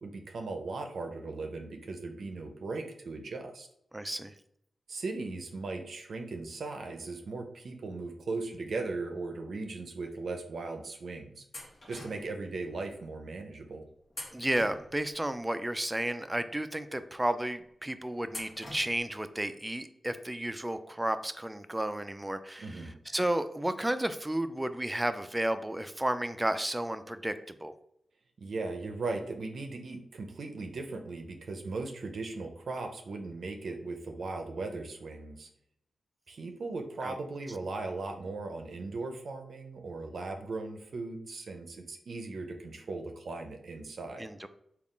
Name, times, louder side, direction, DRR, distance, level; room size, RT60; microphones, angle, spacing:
voice 1, 0.0-3.7 4.9-11.4 11.9-13.8 22.6-22.9 28.4-35.5 36.3-44.3, right 3 dB, 75° right, 4 dB, 0.5 m, -38 dB
voice 2, 3.9-4.3 14.3-27.7 37.0-37.2 44.2-44.5, right 1 dB, 15° right, 11 dB, 0.3 m, -32 dB
sound 1, 11.5-12.4 14.1-15.2 18.3-19.2, left 1 dB, 50° left, 1.0 m, -45 dB
3.6 x 2.3 x 3.6 m, 0.73 s
cardioid pair, 75°, 0 cm